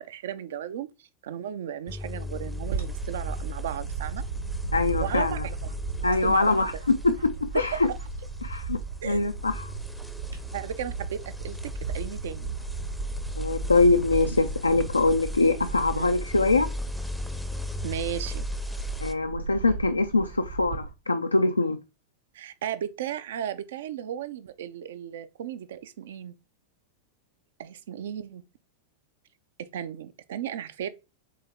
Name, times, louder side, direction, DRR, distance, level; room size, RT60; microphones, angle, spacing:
voice 1, 0.0-4.2 5.0-5.6 6.0-6.8 7.5-7.8 9.0-9.3 10.5-12.5 15.9-16.3 17.8-18.5 22.3-26.3 27.6-28.4 29.6-30.9, right 10 dB, 60° right, 0.6 m, -35 dB
sound 1, 1.9-19.1, left 1 dB, ahead, 0.6 m, -37 dB
Bird / Wind, 2.6-20.9, right 5 dB, 80° right, 1.7 m, -37 dB
voice 2, 4.7-5.5 6.0-7.1 7.5-7.9 8.4-9.7 13.4-16.7 19.0-21.8, left 3 dB, 80° left, 0.4 m, -23 dB
7.7 x 3.6 x 3.5 m
figure-of-eight pair, 90°, 0 cm